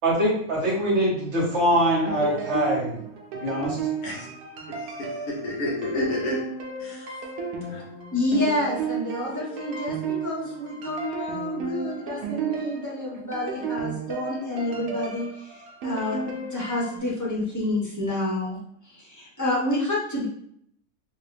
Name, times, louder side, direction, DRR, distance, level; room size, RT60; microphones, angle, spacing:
voice 1, 0.0-3.0 3.4-3.8, equal, 50° right, -4 dB, 1.3 m, -23 dB
sound 1, 1.7-17.0, right 5 dB, 85° right, 1.2 m, -34 dB
voice 2, 4.7-6.4 6.8-7.1 7.6-7.8, left 1 dB, 90° left, -4 dB, 1.5 m, -31 dB
voice 3, 8.1-10.0 10.2-15.5 15.8-18.6 18.9-20.3, left 1 dB, 15° left, -5 dB, 0.8 m, -28 dB
3.7 x 2.3 x 3.3 m, 0.68 s
omnidirectional pair, 1.6 m